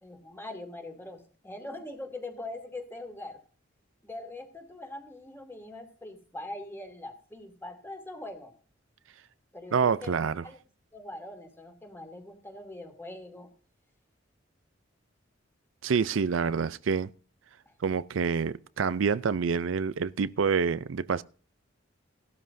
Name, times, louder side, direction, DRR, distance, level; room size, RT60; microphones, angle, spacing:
voice 1, 0.0-3.4 4.0-8.5 9.5-10.2 10.4-10.6 10.9-13.5 17.6-17.7, left 2 dB, 10° left, 2.4 m, -42 dB
voice 2, 9.7-10.4 15.8-17.1 17.8-21.2, right 5 dB, 80° right, 0.5 m, -27 dB
17.0 x 12.5 x 2.7 m
head